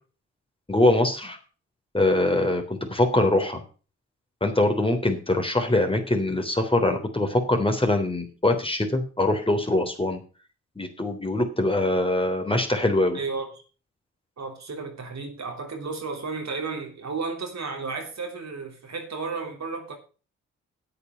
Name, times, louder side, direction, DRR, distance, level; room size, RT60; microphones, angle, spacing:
voice 1, 0.7-1.4 1.9-3.6 4.4-10.2 10.8-13.2, left 2 dB, 15° left, 3.4 m, -23 dB
voice 2, 13.1-13.5 14.4-20.0, right 4 dB, 50° right, 3.1 m, -33 dB
8.9 x 8.4 x 6.3 m
hypercardioid pair, 40°, 35 cm